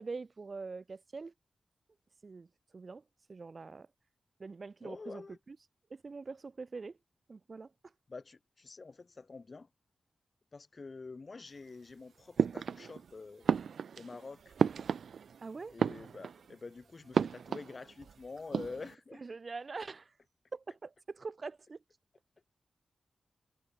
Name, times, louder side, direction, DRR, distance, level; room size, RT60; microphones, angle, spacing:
voice 1, 0.0-1.3 2.2-2.5 2.7-3.0 3.3-3.9 4.4-5.6 5.9-7.0 7.3-7.7 15.4-15.7 19.2-20.1 20.5-21.8, right 4 dB, 55° right, 4.5 m, -44 dB
voice 2, 4.8-5.4 8.1-9.7 10.5-13.5 14.0-14.6 15.7-19.2, left 4 dB, 50° left, 3.7 m, -47 dB
sound 1, 12.4-13.1 13.4-15.4 15.7-16.5 17.1-18.1 18.4-18.9, right 6 dB, 80° right, 1.1 m, -32 dB
cardioid pair, 50°, 0 cm